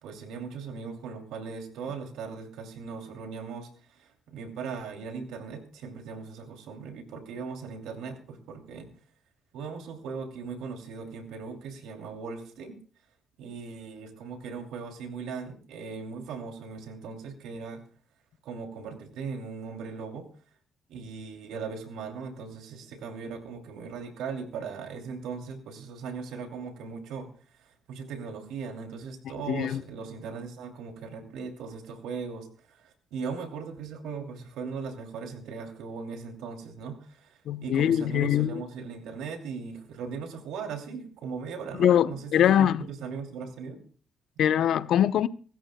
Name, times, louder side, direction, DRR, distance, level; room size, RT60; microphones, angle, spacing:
voice 1, 0.0-8.9 9.5-12.8 13.4-17.8 18.4-20.3 20.9-27.3 27.6-43.8, right 5 dB, 90° right, 2.8 m, -39 dB
voice 2, 29.5-29.8 37.5-38.6 41.8-42.8 44.4-45.3, left 10 dB, 75° left, 0.7 m, -23 dB
25.5 x 14.0 x 2.3 m
cardioid pair, 90°, 0 cm